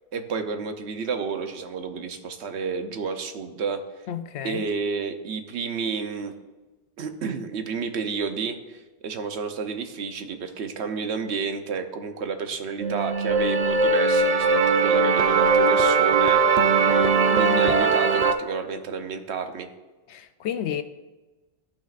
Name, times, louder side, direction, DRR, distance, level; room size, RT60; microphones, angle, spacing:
voice 1, 0.1-3.8 4.4-6.3 7.0-19.7, right 5 dB, 85° right, 1.0 m, -31 dB
voice 2, 4.1-4.7 20.1-20.8, left 9 dB, 80° left, 0.9 m, -31 dB
sound 1, 12.8-18.3, right 4 dB, 50° right, 0.5 m, -20 dB
13.0 x 5.9 x 2.5 m
omnidirectional pair, 1.1 m